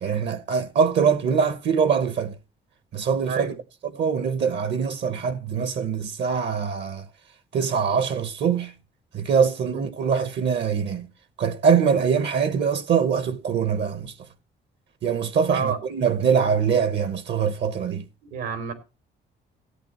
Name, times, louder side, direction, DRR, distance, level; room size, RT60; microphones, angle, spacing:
voice 1, 0.0-2.4 2.9-3.5 3.8-7.1 7.5-8.7 9.1-11.1 11.4-14.1 15.0-18.1, right 6 dB, 60° right, 1.0 m, -23 dB
voice 2, 18.3-18.7, right 6 dB, 90° right, 3.1 m, -28 dB
16.5 x 8.6 x 3.0 m
cardioid pair, 90°, 20 cm